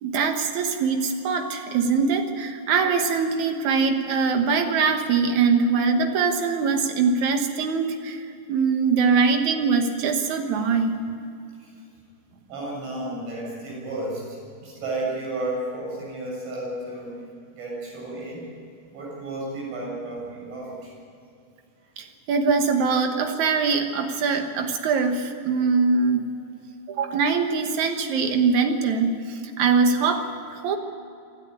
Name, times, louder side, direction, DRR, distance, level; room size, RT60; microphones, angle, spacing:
voice 1, 0.0-8.2 8.5-11.0 22.0-26.3 26.9-30.8, right 5 dB, 75° right, 5 dB, 1.7 m, -22 dB
voice 2, 12.4-14.3 14.6-17.2 17.5-18.4 18.9-20.9, right 2 dB, 90° right, -4 dB, 9.7 m, -32 dB
28.0 x 13.0 x 9.6 m, 2.5 s
omnidirectional pair, 5.4 m